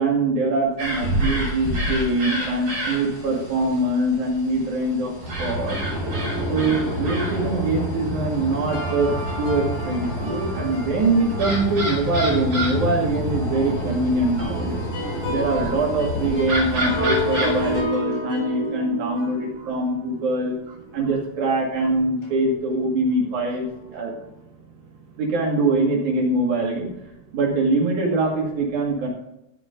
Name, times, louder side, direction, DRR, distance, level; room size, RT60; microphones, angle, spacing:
voice 1, 0.0-5.1 5.4-6.0 6.5-14.8 15.3-24.1 25.2-26.9 27.3-29.1, right 2 dB, 60° right, -1 dB, 3.6 m, -23 dB
sound 1, 0.8-17.8, equal, 45° right, 3.2 m, -28 dB
sound 2, 8.7-12.3 12.8-12.9 13.3-21.2 21.5-21.7 22.2-22.6 23.1-23.8, equal, 65° left, 6.1 m, -32 dB
voice 2, 24.1-25.2 27.2-27.4, right 5 dB, 80° right, -2 dB, 3.0 m, -50 dB
13.0 x 5.9 x 5.2 m, 0.84 s
omnidirectional pair, 4.0 m